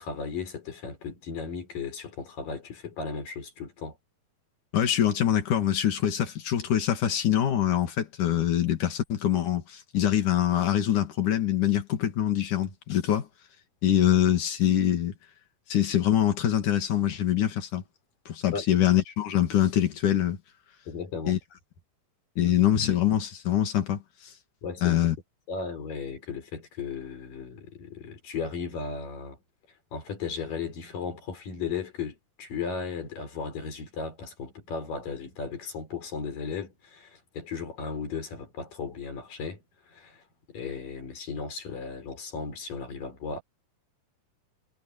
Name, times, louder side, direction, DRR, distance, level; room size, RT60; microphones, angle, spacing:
voice 1, 0.0-4.0 18.5-18.7 20.9-21.4 22.4-22.6 24.6-25.0 25.5-29.4 29.9-43.4, left 5 dB, 90° left, 6.9 m, -36 dB
voice 2, 4.7-13.3 13.8-15.1 15.7-17.8 18.3-20.4 21.3-21.4 22.4-24.0 24.8-25.2, left 11 dB, 70° left, 3.8 m, -24 dB
omnidirectional pair, 3.8 m